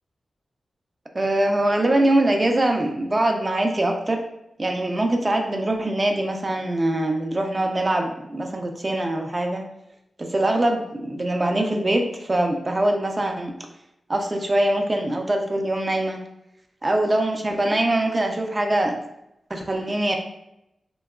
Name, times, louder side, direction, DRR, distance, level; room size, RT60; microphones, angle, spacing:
voice 1, 1.1-4.2 4.6-9.6 10.2-13.5 14.1-16.2 16.8-18.9 19.5-20.2, right 1 dB, 30° right, 3 dB, 0.4 m, -23 dB
2.7 x 2.2 x 2.2 m, 0.83 s
cardioid pair, 65°, 0 cm